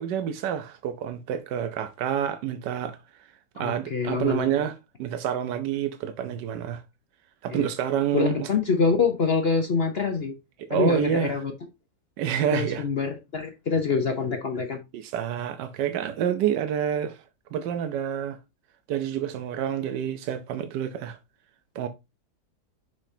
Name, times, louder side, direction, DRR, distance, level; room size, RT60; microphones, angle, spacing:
voice 1, 0.0-3.0 3.6-6.8 7.4-8.5 10.7-11.3 12.2-12.8 14.9-17.2 17.5-18.4 18.9-21.2 21.7-21.9, right 9 dB, 90° right, 1.3 m, -28 dB
voice 2, 3.5-4.5 7.5-7.7 8.1-10.4 10.7-11.5 12.5-14.8, left 5 dB, 50° left, 0.9 m, -25 dB
6.5 x 6.2 x 2.7 m
omnidirectional pair, 1.8 m